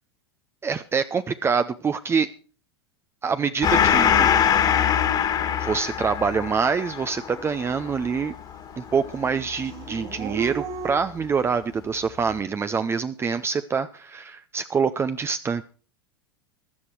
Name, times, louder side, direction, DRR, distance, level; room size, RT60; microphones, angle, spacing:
voice 1, 0.6-2.3 3.2-4.4 5.6-8.3 8.8-15.6, right 5 dB, 20° right, 11 dB, 0.6 m, -25 dB
Gong, 3.6-10.6, left 8 dB, 30° left, 1.9 m, -23 dB
Dog / Siren, 6.6-6.7 7.1-8.6 8.8-10.9, right 8 dB, 55° right, 2.5 m, -36 dB
15.5 x 11.0 x 4.6 m, 0.39 s
hypercardioid pair, 90°, 13 cm